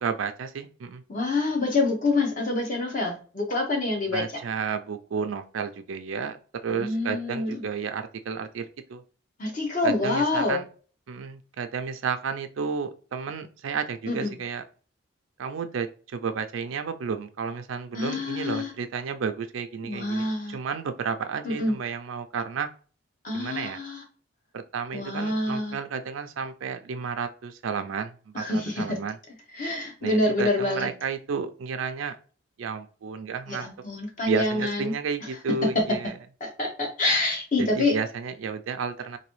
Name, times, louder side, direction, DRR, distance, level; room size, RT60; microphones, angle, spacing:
voice 1, 0.0-1.0 4.1-6.4 6.6-9.0 9.8-10.7 11.1-14.6 15.4-22.7 23.3-23.8 24.5-29.2 30.0-32.2 32.6-33.7 34.2-36.1 37.6-39.2, right 5 dB, 80° right, 8 dB, 0.4 m, -32 dB
voice 2, 1.1-4.2 6.7-7.6 9.4-10.6 14.1-14.3 17.9-18.7 19.8-20.6 21.4-21.7 23.2-24.0 24.9-25.8 28.3-29.0 29.6-30.9 33.5-34.9 36.4-37.9, left 2 dB, 40° left, 1 dB, 1.0 m, -26 dB
3.9 x 2.6 x 3.0 m, 0.39 s
head